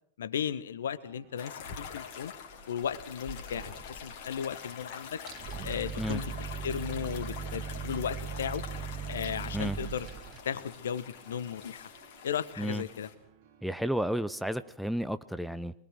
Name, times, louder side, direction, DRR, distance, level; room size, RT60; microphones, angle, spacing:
voice 1, 0.2-2.3 2.7-5.2 5.6-8.6 9.1-10.1 10.4-11.9 12.2-13.1, left 8 dB, 65° left, 15 dB, 1.2 m, -35 dB
sound 1, 1.0-14.7, right 9 dB, 50° right, 2.9 m, -59 dB
sound 2, 1.4-13.1, left 7 dB, 50° left, 3.0 m, -45 dB
sound 3, 3.5-4.6 4.8-4.9 5.2-10.4, right 7 dB, 30° right, 1.6 m, -39 dB
voice 2, 13.6-15.7, equal, ahead, 12 dB, 0.8 m, -32 dB
24.5 x 20.0 x 6.3 m, 0.65 s
figure-of-eight pair, 90°, 0 cm